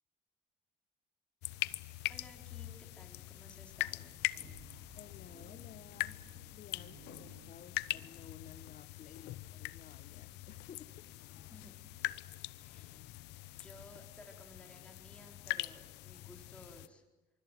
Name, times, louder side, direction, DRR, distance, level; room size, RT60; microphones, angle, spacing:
sound 1, 1.4-16.9, left 18 dB, 90° left, 0.9 m, -42 dB
voice 1, 2.1-4.2 11.5-11.7 12.5-13.0 13.5-17.0, left 1 dB, 5° left, 2 dB, 4.6 m, -57 dB
sound 2, 4.1-8.3, right 4 dB, 90° right, 6.4 m, -59 dB
voice 2, 4.9-11.1, left 8 dB, 50° left, 9 dB, 1.4 m, -56 dB
24.5 x 24.5 x 9.4 m, 1.1 s
cardioid pair, 110°, 17 cm